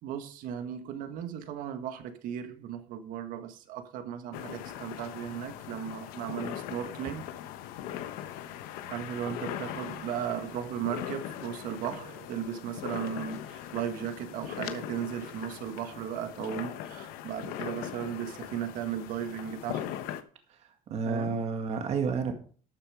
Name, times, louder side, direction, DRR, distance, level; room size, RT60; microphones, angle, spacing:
voice 1, 0.0-7.2 8.9-19.9 21.0-21.3, right 9 dB, 65° right, 1.7 m, -36 dB
sound 1, 4.3-20.2, left 11 dB, 80° left, 1.1 m, -40 dB
voice 2, 20.5-22.3, right 5 dB, 45° right, 2.0 m, -31 dB
12.5 x 7.1 x 4.9 m
cardioid pair, 140°, 15 cm